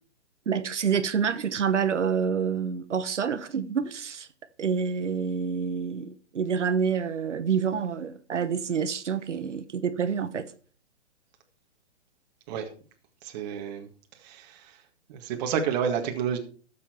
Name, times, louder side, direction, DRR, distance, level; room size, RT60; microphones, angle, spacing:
voice 1, 0.5-4.3 4.6-10.4, right 6 dB, 85° right, 1.1 m, -27 dB
voice 2, 13.2-13.9 14.2-14.8 15.1-16.4, right 7 dB, 35° right, 1.9 m, -30 dB
13.0 x 7.4 x 4.5 m
hypercardioid pair, 140°, 35 cm